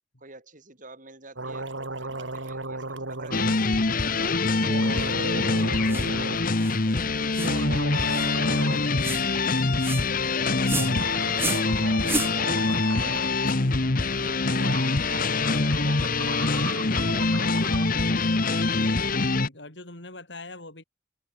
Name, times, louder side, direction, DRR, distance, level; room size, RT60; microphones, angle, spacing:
voice 1, 0.2-3.9 4.2-5.7 6.8-7.6 8.1-10.7 11.3-18.2, right 2 dB, 45° right, 6.4 m, -47 dB
sound 1, 1.4-3.6 4.6-6.4 7.2-8.9 9.1-9.2 10.7-13.4 14.3-14.4 14.6-17.9, right 3 dB, 85° right, 4.3 m, -36 dB
sound 2, 3.3-19.5, left 3 dB, 50° left, 1.2 m, -24 dB
sound 3, 5.9-6.1 6.6-6.8 7.3-7.6 8.1-8.3 9.0-9.3 9.8-10.1 10.6-10.9 11.4-11.7 12.0-12.3, right 3 dB, 10° right, 2.5 m, -31 dB
voice 2, 6.5-7.0 14.2-14.6 18.8-20.8, left 2 dB, 65° left, 5.8 m, -43 dB
head